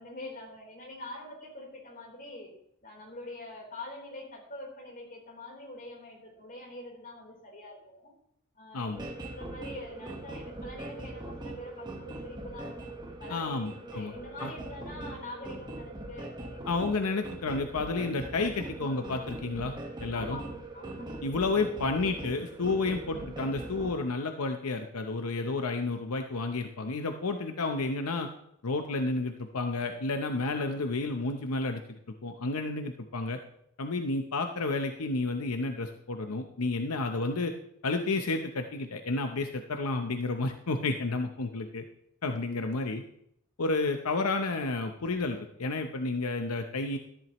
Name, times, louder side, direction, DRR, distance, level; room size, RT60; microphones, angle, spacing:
voice 1, 0.0-2.5 2.8-8.1 8.5-9.1 9.4-12.9 13.2-13.6 13.9-16.6 20.1-20.5 20.7-21.2, left 1 dB, 40° left, -1 dB, 3.8 m, -44 dB
voice 2, 8.7-9.0 13.3-14.1 14.4-14.5 16.7-19.7 20.0-20.4 21.2-28.3 28.6-33.4 33.8-37.5 37.8-41.9 42.2-43.0 43.6-47.0, left 3 dB, 85° left, 6 dB, 0.8 m, -31 dB
sound 1, 8.9-23.9, right 2 dB, 20° right, 1.3 m, -41 dB
13.5 x 11.0 x 3.0 m, 0.74 s
head